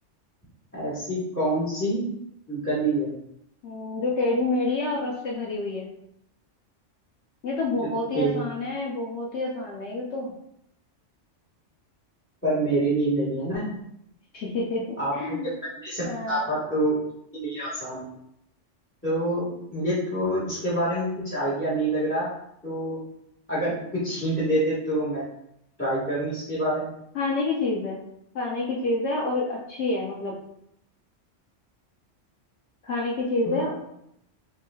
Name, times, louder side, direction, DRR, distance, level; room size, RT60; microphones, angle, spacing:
voice 1, 0.7-2.0 2.5-3.1 8.1-8.4 12.4-13.7 15.0-15.4 15.8-16.9 17.3-18.1 19.0-22.3 22.6-23.0 23.5-25.2 25.8-26.9 33.4-33.6, right 1 dB, 10° left, -9 dB, 1.4 m, -26 dB
voice 2, 3.6-5.9 7.4-10.3 14.3-15.5 16.1-16.7 27.1-28.0 28.3-30.4 32.8-33.8, left 2 dB, 70° left, -2 dB, 0.9 m, -28 dB
5.5 x 3.1 x 2.3 m, 0.77 s
omnidirectional pair, 1.3 m